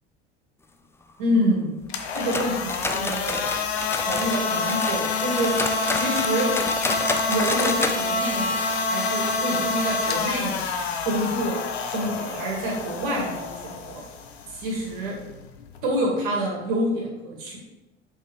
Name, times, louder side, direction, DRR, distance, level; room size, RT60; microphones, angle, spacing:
voice 1, 1.2-1.7 2.1-3.5 4.0-5.5 5.9-6.5 7.3-8.5 8.9-10.6 10.9-11.6 11.9-14.0 14.5-15.2 15.8-17.6, right 1 dB, 60° right, -2 dB, 2.2 m, -27 dB
sound 1, 1.8-15.8, left 4 dB, 75° left, 0.8 m, -27 dB
sound 2, 2.1-4.4 4.7-8.0 8.3-8.4 8.8-8.9 9.4-9.5, left 3 dB, 10° left, 0.4 m, -30 dB
7.3 x 5.4 x 3.3 m, 1.0 s
figure-of-eight pair, 70°, 33 cm